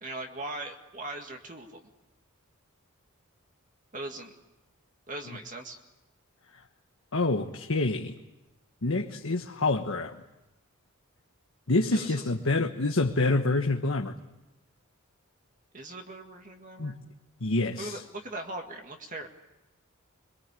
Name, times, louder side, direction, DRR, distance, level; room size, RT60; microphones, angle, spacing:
voice 1, 0.0-1.8 3.9-4.3 5.1-5.8 11.9-12.2 15.7-17.0 17.8-19.3, right 2 dB, 35° right, 3 dB, 2.0 m, -39 dB
voice 2, 7.1-8.1 8.8-10.2 11.7-14.1 16.8-17.0 17.4-18.0, left 2 dB, 65° left, 2 dB, 1.3 m, -27 dB
26.0 x 23.0 x 8.4 m, 0.99 s
head